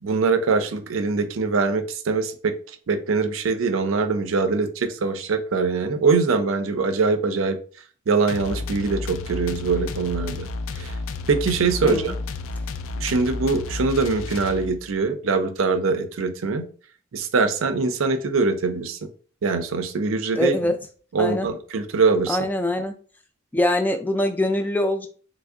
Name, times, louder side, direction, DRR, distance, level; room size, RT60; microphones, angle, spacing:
voice 1, 0.0-2.5 2.9-7.6 8.1-10.5 10.7-10.9 11.3-12.1 13.0-16.7 17.1-19.1 19.4-20.6 21.1-22.4, right 4 dB, 85° right, 8 dB, 0.5 m, -23 dB
sound 1, 8.3-15.0, left 3 dB, 85° left, 0.3 m, -32 dB
voice 2, 11.8-12.1 20.4-20.8 21.2-21.5 22.3-22.9 23.5-25.1, left 1 dB, 10° left, 6 dB, 0.3 m, -23 dB
3.4 x 2.0 x 3.6 m, 0.41 s
head